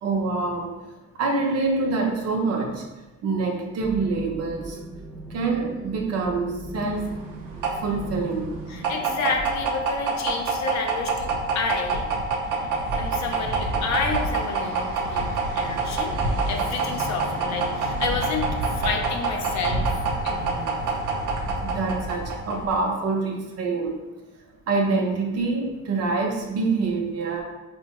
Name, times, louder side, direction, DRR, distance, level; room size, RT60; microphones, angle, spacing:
voice 1, 0.0-0.7 1.1-2.8 3.2-4.8 5.3-7.1 7.8-8.5 21.6-24.0 24.7-27.4, right 3 dB, 55° right, 1 dB, 0.7 m, -25 dB
sound 1, 3.8-9.5, right 1 dB, 5° right, 0.3 m, -39 dB
sound 2, 6.9-22.9, right 3 dB, 90° right, 0.6 m, -26 dB
voice 2, 8.7-12.1 13.0-15.2 15.6-16.1 16.5-20.8, left 5 dB, 60° left, 3 dB, 0.6 m, -30 dB
4.4 x 2.2 x 2.9 m, 1.2 s
cardioid pair, 155°, 31 cm